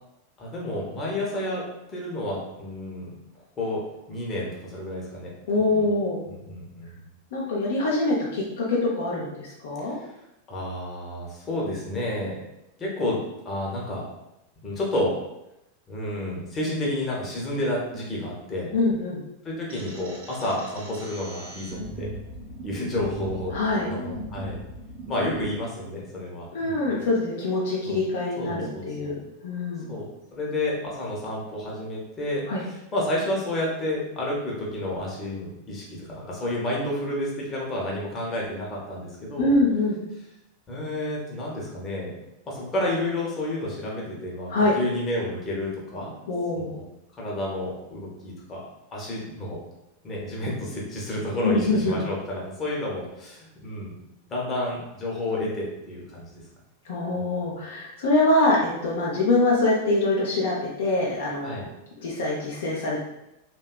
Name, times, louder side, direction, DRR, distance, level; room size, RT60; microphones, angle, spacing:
voice 1, 0.4-1.6 1.9-3.1 3.6-5.3 5.6-5.9 6.3-7.1 9.9-10.1 10.5-12.3 12.8-14.0 14.6-15.1 15.9-18.7 19.4-22.1 22.6-23.5 23.8-24.6 25.0-27.0 27.9-28.0 28.4-29.2 29.9-30.1 30.3-39.5 40.7-42.1 42.5-46.1 46.5-46.8 47.1-48.6 48.9-49.6 50.0-53.9 54.3-56.3 57.2-57.3 61.4-61.7, left 1 dB, 25° left, -4 dB, 0.7 m, -30 dB
voice 2, 5.5-6.2 7.3-10.0 18.7-19.2 23.5-23.9 26.5-29.2 29.4-29.9 32.5-32.6 39.4-40.0 44.5-44.7 46.3-46.7 51.4-52.0 56.9-61.6 62.0-63.0, left 2 dB, 60° left, -4 dB, 0.5 m, -24 dB
sound 1, 19.7-25.5, equal, 70° right, 0.7 m, -38 dB
2.7 x 2.2 x 2.2 m, 0.89 s
figure-of-eight pair, 90°, 0 cm